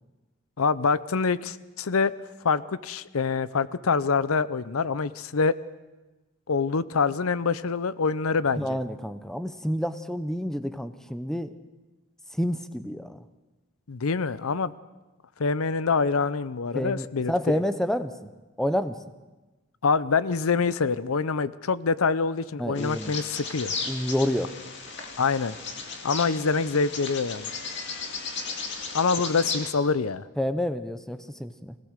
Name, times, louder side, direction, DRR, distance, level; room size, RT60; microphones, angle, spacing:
voice 1, 0.6-2.1 2.4-5.6 6.5-8.8 13.9-14.7 15.4-17.6 19.8-23.7 25.2-25.6 26.0-27.5 28.9-30.2, left 4 dB, 85° left, 16 dB, 0.7 m, -25 dB
voice 2, 8.6-11.5 12.4-13.2 16.7-18.3 18.6-19.0 22.6-23.1 23.9-24.5 30.4-31.7, equal, ahead, 11 dB, 0.7 m, -29 dB
Bird vocalization bird call bird song, 22.8-29.7, left 4 dB, 55° left, 2.2 m, -35 dB
24.0 x 17.5 x 6.6 m, 1.2 s
head